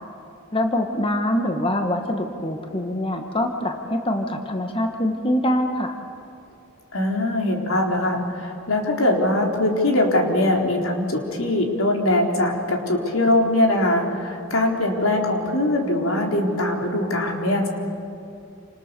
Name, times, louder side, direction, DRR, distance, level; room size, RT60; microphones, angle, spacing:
voice 1, 0.5-6.0, left 1 dB, 25° left, 4 dB, 1.5 m, -24 dB
voice 2, 6.9-17.7, left 1 dB, 85° left, 1 dB, 3.9 m, -22 dB
28.5 x 27.0 x 6.9 m, 2.7 s
head